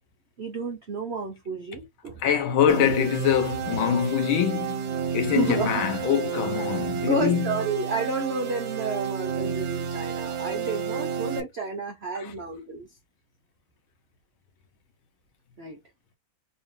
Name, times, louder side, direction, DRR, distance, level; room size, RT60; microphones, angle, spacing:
voice 1, 0.4-2.2 5.3-5.8 7.1-12.9 15.6-15.8, right 4 dB, 80° right, 0.5 m, -31 dB
voice 2, 2.2-7.6, left 9 dB, 75° left, 1.7 m, -24 dB
sound 1, 2.7-11.4, right 7 dB, 65° right, 0.9 m, -31 dB
4.0 x 2.7 x 3.1 m
omnidirectional pair, 2.3 m